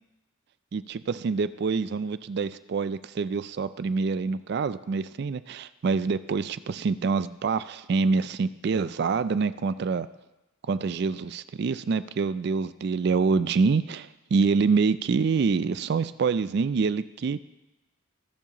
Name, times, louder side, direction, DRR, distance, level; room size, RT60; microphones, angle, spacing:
voice 1, 0.7-10.1 10.6-17.4, right 4 dB, 55° right, 15 dB, 0.3 m, -26 dB
21.5 x 7.3 x 3.0 m, 1.0 s
head